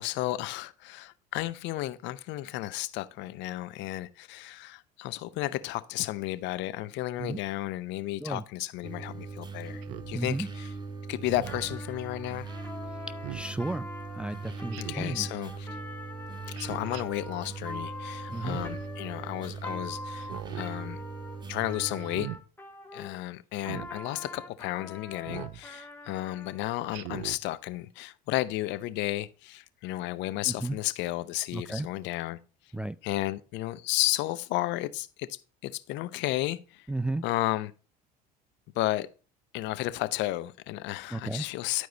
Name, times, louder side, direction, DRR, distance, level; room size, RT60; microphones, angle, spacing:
voice 1, 0.0-10.7 11.1-12.5 14.8-15.7 16.6-20.3 20.6-21.0 21.5-22.3 22.9-32.4 33.0-35.3 35.6-36.8 37.2-37.7 38.7-39.1 39.5-41.9, left 16 dB, 65° left, 0.7 m, -33 dB
sound 1, 8.8-22.3, right 4 dB, 20° right, 1.4 m, -40 dB
Speech synthesizer, 9.8-10.1 11.3-11.8 13.2-13.5 14.7-15.2 16.5-17.0 18.3-18.9 20.2-20.7 22.0-22.4 23.6-23.9 25.3-25.6 26.9-27.4, right 15 dB, 65° right, 0.6 m, -40 dB
voice 2, 10.1-10.5 13.3-13.9 14.2-15.3 18.3-18.6 30.5-30.8 31.5-31.9 32.7-33.0 36.9-37.2 41.1-41.4, right 2 dB, 5° right, 0.3 m, -33 dB
Trumpet, 11.4-23.1 23.6-26.6, left 2 dB, 10° left, 1.8 m, -44 dB
11.5 x 4.7 x 4.0 m
hypercardioid pair, 70°, 21 cm